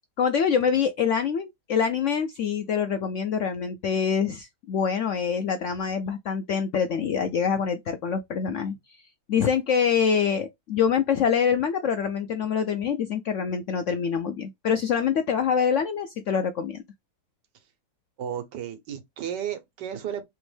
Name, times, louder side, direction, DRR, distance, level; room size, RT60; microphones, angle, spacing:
voice 1, 0.2-9.0 9.3-16.8, left 7 dB, 75° left, 0.7 m, -25 dB
voice 2, 18.2-20.2, right 9 dB, 85° right, 1.6 m, -33 dB
3.5 x 3.0 x 3.2 m
omnidirectional pair, 1.8 m